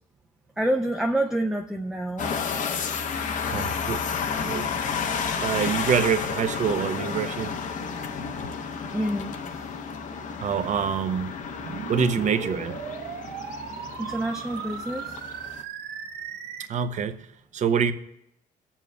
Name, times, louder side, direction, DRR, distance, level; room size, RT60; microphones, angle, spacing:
voice 1, 0.6-2.4 8.9-9.4 14.0-15.1, right 1 dB, 5° right, 0.4 m, -27 dB
sound 1, 2.2-15.6, left 6 dB, 50° left, 0.7 m, -31 dB
voice 2, 3.5-4.0 4.4-4.8 5.4-7.5 10.4-11.3 11.9-12.8 16.7-17.3 17.5-17.9, right 7 dB, 45° right, 0.6 m, -26 dB
sound 2, 11.6-16.6, right 7 dB, 75° right, 0.8 m, -37 dB
20.0 x 7.2 x 2.2 m
cardioid pair, 110°, 17 cm